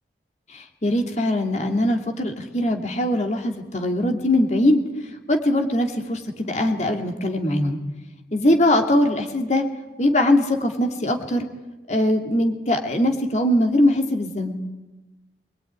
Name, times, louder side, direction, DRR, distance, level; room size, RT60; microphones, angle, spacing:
voice 1, 0.5-4.8 5.3-7.8 8.3-9.6 10.0-11.5 11.9-14.6, left 1 dB, 40° left, 3 dB, 2.8 m, -21 dB
25.5 x 21.5 x 9.7 m, 1.1 s
head